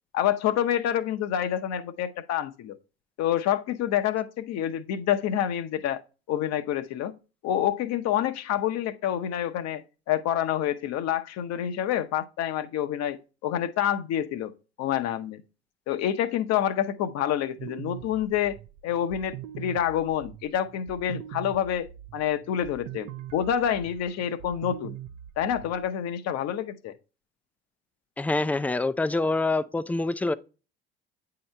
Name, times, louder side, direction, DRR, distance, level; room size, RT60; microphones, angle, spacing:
voice 1, 0.1-2.8 3.2-6.0 6.3-7.1 7.4-14.5 14.8-15.4 15.9-18.6 18.8-21.9 22.1-25.0 25.4-26.9, left 10 dB, 55° left, 0.8 m, -27 dB
sound 1, 17.6-25.9, right 11 dB, 60° right, 0.6 m, -43 dB
voice 2, 28.2-30.3, left 2 dB, 5° left, 0.3 m, -26 dB
8.5 x 2.9 x 4.4 m
hypercardioid pair, 65°, 32 cm